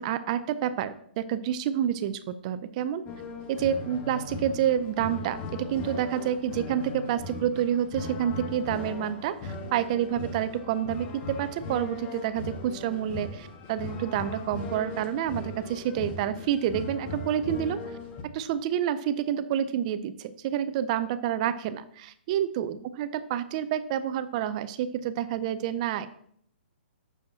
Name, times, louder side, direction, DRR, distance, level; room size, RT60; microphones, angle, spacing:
voice 1, 0.0-3.0 3.5-18.0 18.3-26.1, right 10 dB, 40° right, 13 dB, 0.5 m, -28 dB
sound 1, 3.1-18.2, left 2 dB, 30° left, 1.3 m, -39 dB
9.9 x 7.0 x 2.8 m, 0.66 s
hypercardioid pair, 140°, 6 cm